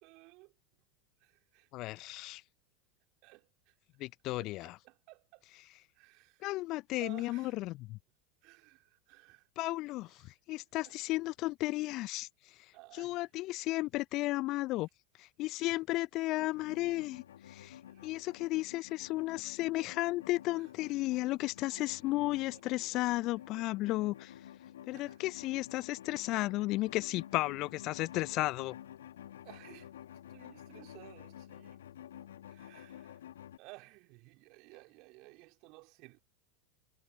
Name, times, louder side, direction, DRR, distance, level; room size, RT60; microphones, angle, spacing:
voice 1, 0.0-0.5 1.2-1.9 3.2-3.8 4.4-5.5 5.9-6.5 7.0-7.6 8.4-9.5 10.1-10.4 10.8-11.0 12.7-13.2 17.8-18.1 20.6-20.7 21.2-21.3 21.7-21.9 22.5-22.6 22.9-23.3 24.9-25.2 29.4-31.9 32.2-33.2 33.6-36.2, right 25 dB, 50° right, 3.3 m, -56 dB
voice 2, 1.7-2.4 4.0-4.7 6.4-8.0 9.6-14.9 15.2-24.3 24.9-28.8, left 19 dB, 45° left, 0.5 m, -34 dB
sound 1, 16.4-33.6, left 11 dB, 65° left, 1.5 m, -51 dB
figure-of-eight pair, 80°, 0 cm